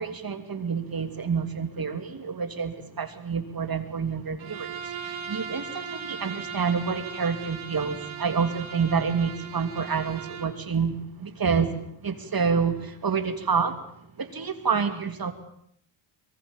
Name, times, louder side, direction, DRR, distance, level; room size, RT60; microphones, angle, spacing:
voice 1, 0.0-13.8 14.2-15.3, right 5 dB, 45° right, 8 dB, 3.0 m, -28 dB
Bowed string instrument, 4.4-10.6, right 6 dB, 75° right, 3.3 m, -38 dB
24.5 x 23.0 x 7.3 m, 0.70 s
wide cardioid pair, 115°, 49 cm